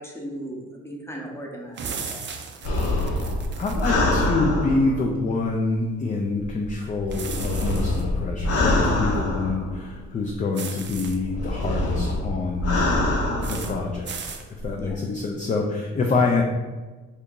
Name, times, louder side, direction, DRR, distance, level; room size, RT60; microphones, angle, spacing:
voice 1, 0.0-2.2 14.8-15.0, right 1 dB, 10° left, -1 dB, 0.7 m, -37 dB
sound 1, 1.8-3.9 7.1-8.0 10.5-11.2 13.4-13.7 14.1-14.4, right 5 dB, 40° right, 0.4 m, -36 dB
sound 2, 2.6-5.2 6.4-10.0 10.9-13.9 14.5-14.9, left 1 dB, 55° left, 0.8 m, -25 dB
voice 2, 3.6-12.7 13.4-14.3 14.6-16.4, left 3 dB, 25° left, 1 dB, 0.3 m, -26 dB
2.8 x 2.6 x 3.6 m, 1.3 s
cardioid pair, 90°, 30 cm